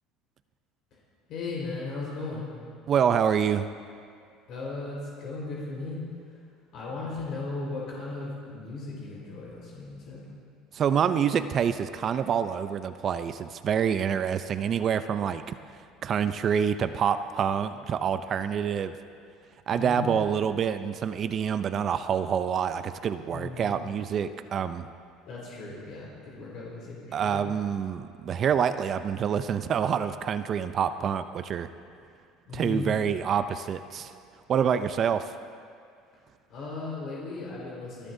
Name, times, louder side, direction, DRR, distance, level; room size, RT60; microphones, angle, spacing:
voice 1, 1.3-2.5 4.5-6.0 6.3-6.4 6.7-10.2 19.7-20.5 23.3-23.9 25.2-27.4 32.5-33.0 36.5-38.1, left 3 dB, 55° left, -5 dB, 4.1 m, -36 dB
voice 2, 2.9-3.7 10.7-15.4 16.0-18.9 19.7-24.9 27.1-31.7 32.5-34.1 34.5-35.4, right 7 dB, 40° right, 11 dB, 0.4 m, -27 dB
27.0 x 11.5 x 2.7 m, 2.3 s
cardioid pair, 120°, 0 cm